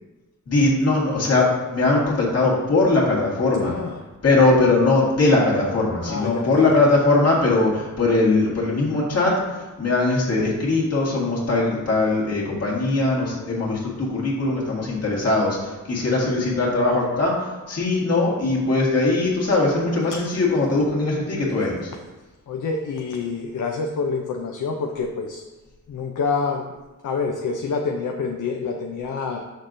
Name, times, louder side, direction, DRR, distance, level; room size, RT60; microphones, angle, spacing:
voice 1, 0.5-3.8 4.2-21.9, left 2 dB, 50° left, -5 dB, 1.8 m, -20 dB
voice 2, 3.6-4.0 6.1-6.7 22.5-25.5 25.9-26.7 27.0-29.4, left 4 dB, 70° left, 2 dB, 0.5 m, -27 dB
7.4 x 6.4 x 2.6 m, 1.2 s
wide cardioid pair, 180°, 32 cm